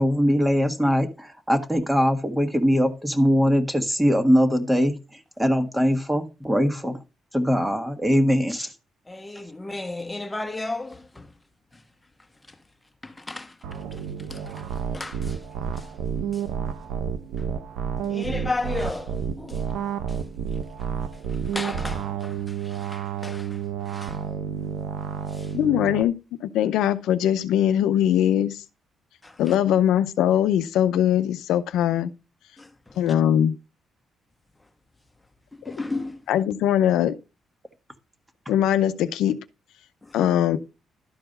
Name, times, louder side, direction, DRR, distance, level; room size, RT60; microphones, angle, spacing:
voice 1, 0.0-7.0 7.3-8.7, equal, 10° right, 1.6 m, -22 dB
voice 2, 9.1-11.3 11.7-11.8 12.5-12.6 13.0-14.0 14.3-15.4 15.7-15.9 16.3-16.4 17.4-17.5 18.1-19.7 20.1-20.2 21.3-24.2 25.3-25.5 29.2-29.5 32.6-33.0 35.6-36.2 40.0-40.2, left 2 dB, 15° left, 1.3 m, -35 dB
sound 1, 13.6-26.0, right 7 dB, 90° right, 0.9 m, -30 dB
voice 3, 25.5-26.2 26.4-28.6 29.4-32.1 33.0-33.6 35.7-35.8 36.3-37.2 38.5-39.4 40.1-40.6, left 10 dB, 85° left, 0.6 m, -21 dB
12.0 x 4.6 x 5.4 m
cardioid pair, 90°, 0 cm